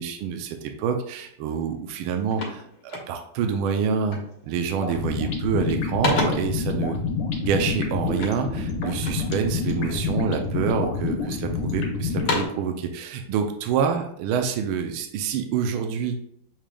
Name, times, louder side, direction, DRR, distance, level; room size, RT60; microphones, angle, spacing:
voice 1, 0.0-2.6 3.1-7.0 7.4-16.2, right 6 dB, 80° right, 5 dB, 1.4 m, -27 dB
sound 1, 1.5-1.6 1.9-3.5 4.1-4.4 4.8-5.3 5.6-6.6 8.1-9.3 9.8-10.5 11.0-11.7 12.0-12.7, left 3 dB, 65° left, 1.7 m, -32 dB
sound 2, 4.8-12.5, left 4 dB, 85° left, 1.8 m, -28 dB
7.2 x 3.3 x 2.2 m, 0.68 s
omnidirectional pair, 2.4 m